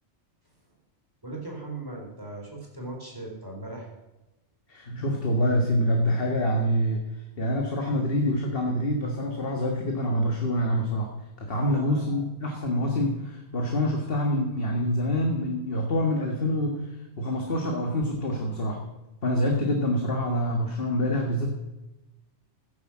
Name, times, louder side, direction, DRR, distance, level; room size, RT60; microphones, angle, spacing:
voice 1, 1.2-3.9 11.6-12.2, right 2 dB, 20° right, -1 dB, 4.5 m, -38 dB
voice 2, 4.7-7.0 7.4-18.8 19.2-21.5, equal, 50° left, 1 dB, 1.9 m, -26 dB
15.0 x 10.5 x 7.4 m, 1.0 s
omnidirectional pair, 1.2 m